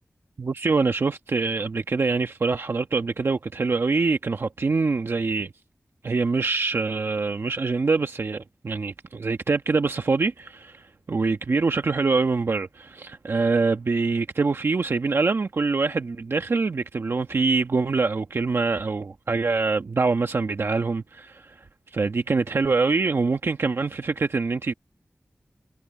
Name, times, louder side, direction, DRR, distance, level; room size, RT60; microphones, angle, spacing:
voice 1, 0.4-5.5 6.0-10.7 11.1-21.6 21.9-24.7, right 4 dB, 60° right, 1.1 m, -24 dB
wide cardioid pair, 90°, 5 cm